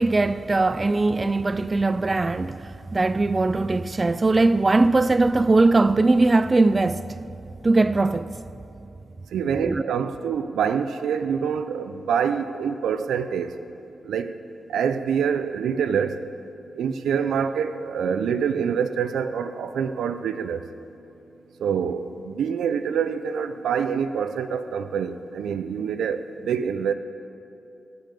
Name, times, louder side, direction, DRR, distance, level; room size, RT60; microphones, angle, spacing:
voice 1, 0.0-7.1 7.6-8.4 9.6-9.9, right 3 dB, 35° right, 0.4 m, -20 dB
voice 2, 9.3-13.5 14.1-14.3 14.7-16.2 16.8-20.6 21.6-26.9, right 7 dB, 90° right, 0.6 m, -26 dB
18.0 x 6.8 x 8.4 m
cardioid pair, 60°, 0 cm